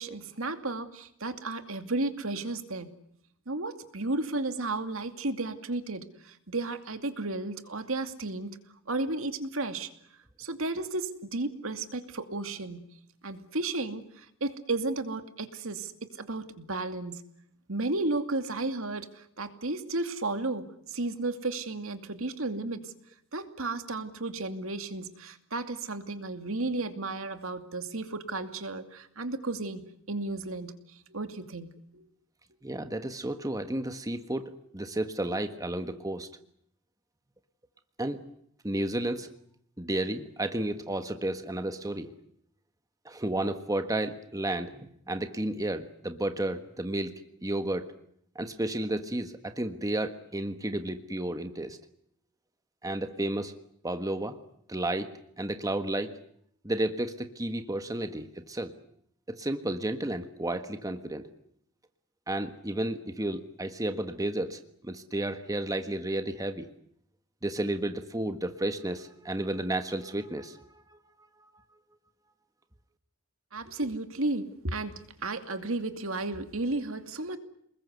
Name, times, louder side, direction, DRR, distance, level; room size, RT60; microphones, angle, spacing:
voice 1, 0.0-2.9 3.5-8.6 8.9-9.9 10.4-12.8 13.2-15.9 16.2-17.2 17.7-22.9 23.3-30.7 31.1-32.0 73.5-77.4, right 2 dB, 70° right, 8 dB, 2.6 m, -33 dB
voice 2, 32.6-36.3 38.0-38.2 38.6-39.3 39.8-42.1 43.0-44.8 45.1-47.1 47.4-47.9 48.3-51.8 52.8-53.5 53.8-54.4 54.7-56.1 56.6-58.7 59.3-61.3 62.3-66.7 67.4-70.8, right 1 dB, 15° right, 8 dB, 1.5 m, -32 dB
29.5 x 21.0 x 8.2 m, 0.71 s
head